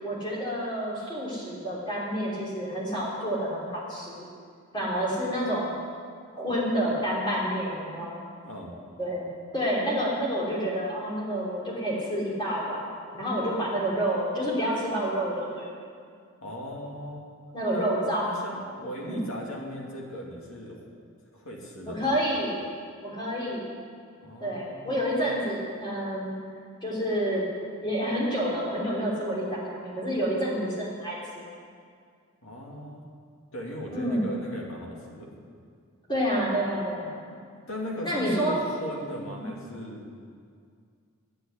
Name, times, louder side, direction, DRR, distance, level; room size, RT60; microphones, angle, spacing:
voice 1, 0.0-4.3 4.7-5.8 6.4-8.2 9.0-9.3 9.5-12.9 13.1-15.7 17.5-18.3 19.0-19.2 21.8-22.6 23.0-23.7 24.4-26.3 26.8-27.4 27.8-31.4 33.9-34.2 36.1-37.2 38.0-38.6, equal, 20° left, -6 dB, 3.3 m, -29 dB
voice 2, 16.4-17.3 17.7-17.9 18.2-20.9 21.3-22.2 24.2-25.0 32.4-33.0 33.5-35.3 37.3-37.4 37.7-40.0, equal, 65° left, -2 dB, 2.3 m, -38 dB
9.7 x 7.9 x 9.4 m, 2.2 s
head